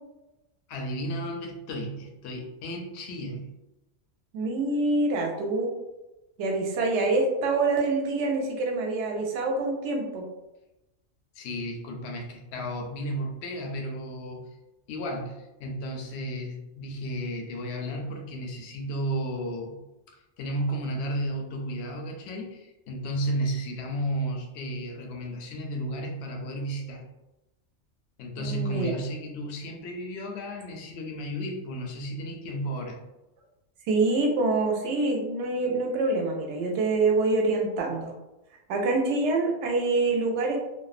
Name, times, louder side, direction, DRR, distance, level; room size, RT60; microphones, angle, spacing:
voice 1, 0.7-3.5 11.3-14.5 14.9-19.8 20.4-27.0 28.2-33.0, right 1 dB, 65° left, 1 dB, 0.8 m, -33 dB
voice 2, 4.3-5.7 6.4-10.2 28.4-28.9 33.9-38.1 38.7-40.6, right 3 dB, 70° right, 1 dB, 0.8 m, -26 dB
2.6 x 2.1 x 2.4 m, 0.98 s
omnidirectional pair, 1.3 m